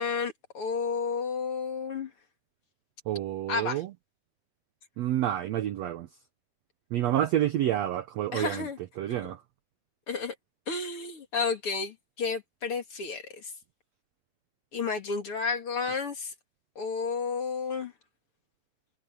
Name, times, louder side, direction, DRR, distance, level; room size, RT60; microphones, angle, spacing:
voice 1, 0.0-2.1 3.5-3.8 8.3-8.8 10.1-10.3 10.7-13.5 14.7-16.3 16.8-17.9, left 5 dB, 40° left, 2.9 m, -31 dB
voice 2, 3.1-3.9 5.0-6.1 6.9-8.7 9.0-9.4, right 12 dB, 75° right, 1.6 m, -28 dB
omnidirectional pair, 4.0 m